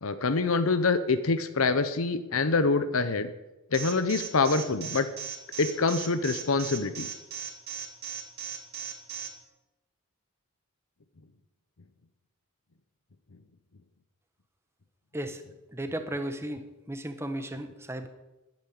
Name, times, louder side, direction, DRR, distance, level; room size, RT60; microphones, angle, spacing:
voice 1, 0.0-3.3 3.7-5.1 5.6-7.1, left 4 dB, 75° left, 11 dB, 0.9 m, -25 dB
Alarm, 3.7-9.3, right 9 dB, 45° right, 2.6 m, -37 dB
voice 2, 15.7-18.1, right 1 dB, 10° right, 7 dB, 1.1 m, -35 dB
10.5 x 8.8 x 9.5 m, 1.0 s
head